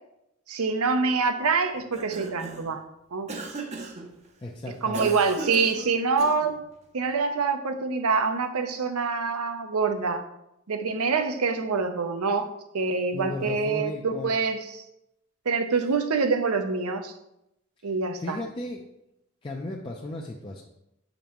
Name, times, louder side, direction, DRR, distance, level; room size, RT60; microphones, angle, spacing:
voice 1, 0.5-2.8 3.1-3.3 4.8-6.6 6.9-10.2 10.7-12.5 12.7-14.8 15.5-17.1 17.8-18.4, right 4 dB, 80° right, 7 dB, 0.7 m, -25 dB
Cough, 1.7-2.8 3.3-4.1 4.9-6.6, right 3 dB, 30° right, 0.5 m, -37 dB
voice 2, 4.4-5.1 13.1-14.3 17.8-17.9 18.2-18.8 19.4-20.6, left 2 dB, 25° left, -1 dB, 0.4 m, -35 dB
7.3 x 5.2 x 3.0 m, 0.84 s
head